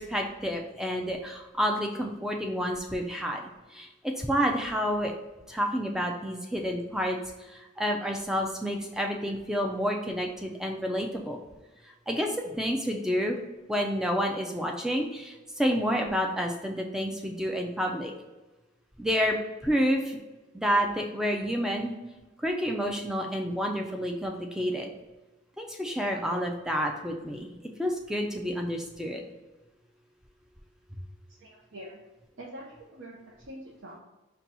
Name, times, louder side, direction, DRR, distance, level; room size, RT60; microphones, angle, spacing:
voice 1, 0.0-3.4 3.7-5.1 5.5-7.2 7.5-11.4 12.1-13.4 13.7-18.1 19.0-19.4 19.6-20.2 20.5-21.9 22.4-24.9 25.6-29.2, equal, 5° right, 1 dB, 0.3 m, -29 dB
voice 2, 31.4-32.0 32.4-34.0, right 1 dB, 70° right, -4 dB, 0.6 m, -45 dB
4.0 x 2.2 x 4.2 m, 1.1 s
head